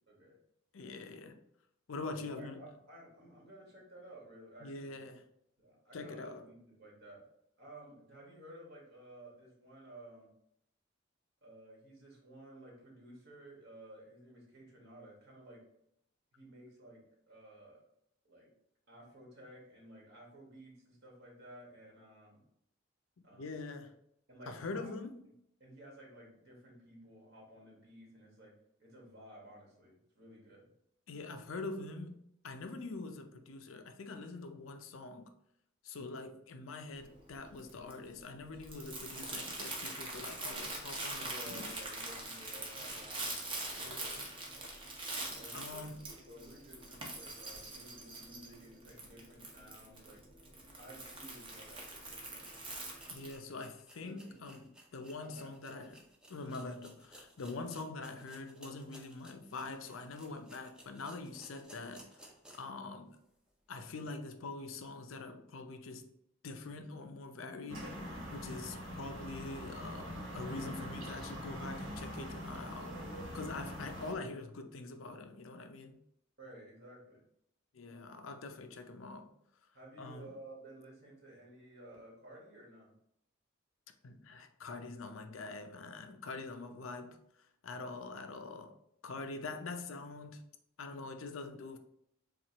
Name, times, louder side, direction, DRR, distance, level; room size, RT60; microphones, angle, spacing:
voice 1, 0.1-0.4 0.8-1.0 2.0-5.0 5.6-7.2 7.6-10.3 11.4-15.7 16.3-17.8 18.2-18.5 18.9-22.4 23.2-23.7 24.3-24.9 25.6-30.7 41.2-44.1 44.5-44.7 45.3-50.2 50.8-52.6 54.0-54.7 55.2-55.9 76.4-77.2 79.7-82.9, right 1 dB, 60° right, 1.9 m, -54 dB
voice 2, 0.7-1.4 1.9-2.6 4.6-5.3 5.9-6.4 23.4-23.9 24.5-25.2 31.1-35.3 35.8-41.7 43.8-44.4 45.5-46.1 53.1-56.0 56.3-62.2 62.5-63.2 63.7-66.1 66.4-67.9 68.3-72.9 73.3-76.0 77.7-79.3 80.0-80.3 84.0-87.2 87.6-90.4 90.8-91.8, left 3 dB, 90° left, 0.5 m, -44 dB
Crumpling crinkling, 36.9-53.4, right 2 dB, 25° right, 0.9 m, -44 dB
sound 1, 52.2-62.8 63.2-63.3 63.8-63.9, equal, 5° right, 0.6 m, -59 dB
sound 2, 67.7-74.1, equal, 85° right, 1.4 m, -43 dB
7.3 x 2.4 x 2.9 m
head